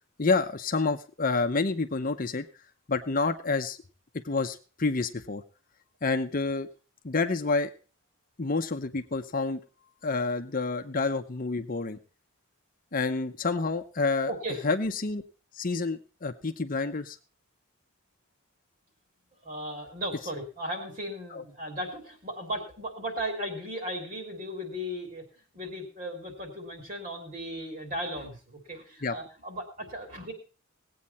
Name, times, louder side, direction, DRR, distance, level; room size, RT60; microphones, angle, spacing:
voice 1, 0.2-2.4 2.9-3.8 4.2-5.4 6.0-6.7 7.0-7.7 8.4-9.6 10.0-12.0 12.9-14.3 14.6-15.2 15.5-17.2 21.3-21.4 29.0-29.2, left 3 dB, 40° left, 7 dB, 0.7 m, -28 dB
voice 2, 14.3-14.6 19.4-25.2 25.5-30.3, equal, 40° right, 3 dB, 3.2 m, -36 dB
18.5 x 8.6 x 4.2 m, 0.36 s
head